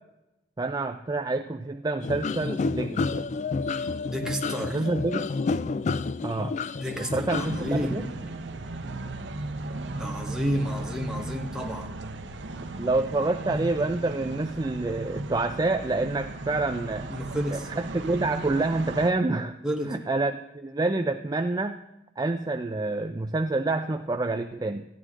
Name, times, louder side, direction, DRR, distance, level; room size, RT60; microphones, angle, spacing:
voice 1, 0.6-3.2 4.7-5.3 6.2-6.6 7.0-8.1 12.8-17.1 17.5-19.5 19.9-21.8 22.2-24.9, right 2 dB, 20° right, 6 dB, 0.4 m, -27 dB
sound 1, 2.0-7.8, left 4 dB, 40° left, 0.3 m, -30 dB
voice 2, 4.1-4.9 6.8-8.1 10.0-11.9 17.1-17.7 19.6-19.9, equal, 5° right, 1 dB, 1.3 m, -31 dB
sound 2, 7.3-19.1, right 2 dB, 75° right, 0.9 m, -36 dB
14.0 x 10.0 x 3.7 m, 0.91 s
head